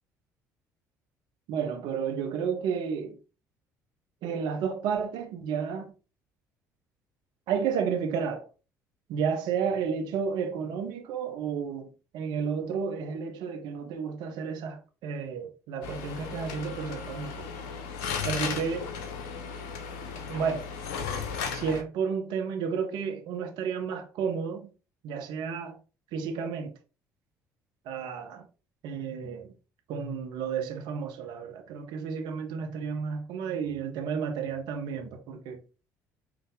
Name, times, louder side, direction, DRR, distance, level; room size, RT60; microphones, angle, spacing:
voice 1, 1.5-3.2 4.2-5.9 7.5-8.4 9.1-11.9 12.1-17.5 18.2-18.9 20.3-20.6 21.5-24.7 25.0-25.8 26.1-26.7 27.8-28.5 28.8-29.5 29.9-35.6, right 6 dB, 60° right, 1.4 m, -32 dB
sound 1, 15.8-21.8, left 6 dB, 65° left, 0.7 m, -35 dB
4.9 x 2.9 x 3.8 m
figure-of-eight pair, 55°, 9 cm